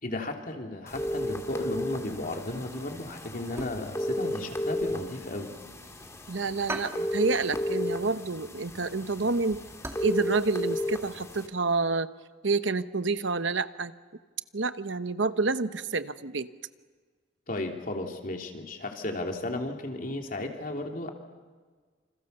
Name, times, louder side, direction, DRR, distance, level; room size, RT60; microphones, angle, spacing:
voice 1, 0.0-5.5 17.5-21.1, left 2 dB, 45° left, 2 dB, 3.3 m, -34 dB
sound 1, 0.9-11.5, left 1 dB, 15° left, 2.2 m, -34 dB
sound 2, 3.4-4.2 4.5-5.9 6.2-6.3 6.7-7.8 8.1-8.3 8.7-10.1 10.4-10.5 11.0-11.2 11.5-11.6, right 2 dB, 15° right, 2.6 m, -40 dB
voice 2, 6.3-9.6 10.0-12.1 12.4-13.9 14.5-16.5, right 3 dB, 70° right, 12 dB, 0.9 m, -28 dB
28.5 x 27.0 x 6.9 m, 1.5 s
head